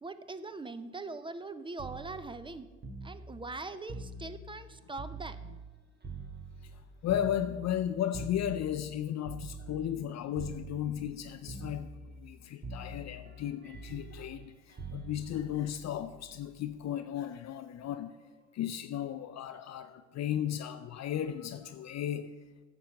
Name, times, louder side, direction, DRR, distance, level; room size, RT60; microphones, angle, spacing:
voice 1, 0.0-2.7 3.0-5.4, right 3 dB, 15° right, 0.6 m, -42 dB
sound 1, 1.8-5.7 6.0-10.1 10.4-11.2 11.5-12.4 12.6-16.6 17.8-18.1, right 3 dB, 35° right, 1.9 m, -45 dB
voice 2, 7.0-11.9 12.2-18.1 18.5-22.3, left 10 dB, 60° left, 0.5 m, -35 dB
10.5 x 7.0 x 6.4 m
cardioid pair, 90°, 30 cm